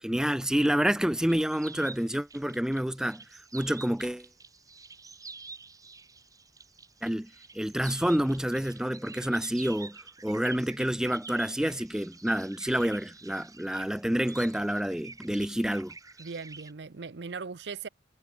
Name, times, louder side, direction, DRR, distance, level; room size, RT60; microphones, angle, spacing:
voice 1, 0.0-3.2 3.5-4.3 7.0-7.3 7.5-15.9, equal, 5° right, 0.5 m, -28 dB
sound 1, 1.3-16.7, right 4 dB, 20° right, 4.5 m, -48 dB
voice 2, 16.2-17.9, right 5 dB, 75° right, 0.7 m, -39 dB
head